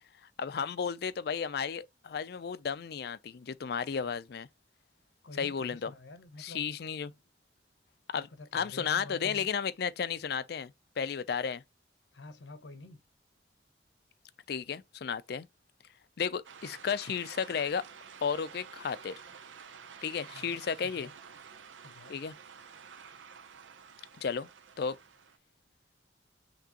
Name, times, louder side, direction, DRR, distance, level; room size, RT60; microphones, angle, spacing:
voice 1, 0.4-4.5 5.4-5.9 6.4-7.1 8.1-11.6 14.5-15.5 16.2-17.8 18.2-19.1 20.0-21.1 22.1-22.3 24.2-24.5 24.8-25.0, left 6 dB, 55° left, 0.4 m, -33 dB
voice 2, 5.2-6.7 8.1-9.5 12.1-13.0 20.3-20.6 20.8-21.1 21.8-22.2, left 2 dB, 80° left, 0.8 m, -48 dB
sound 1, 16.4-25.4, right 6 dB, 90° right, 0.6 m, -51 dB
5.9 x 3.0 x 2.8 m
head